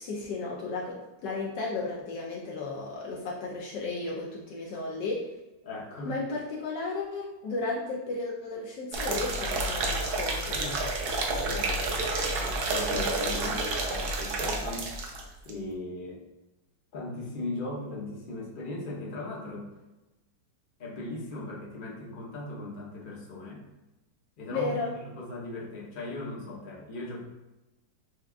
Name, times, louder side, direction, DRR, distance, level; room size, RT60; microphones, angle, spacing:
voice 1, 0.0-5.3 6.1-10.8 24.5-24.9, left 3 dB, 70° left, -3 dB, 1.2 m, -34 dB
voice 2, 5.6-6.1 11.4-12.0 12.4-15.1 15.4-16.2 16.9-19.7 20.8-23.6 24.4-27.2, left 2 dB, 50° left, -4 dB, 0.6 m, -38 dB
sound 1, 8.9-15.2 15.5-15.6, right 2 dB, 70° right, 1.0 m, -30 dB
6.2 x 2.2 x 2.4 m, 1.0 s
omnidirectional pair, 2.1 m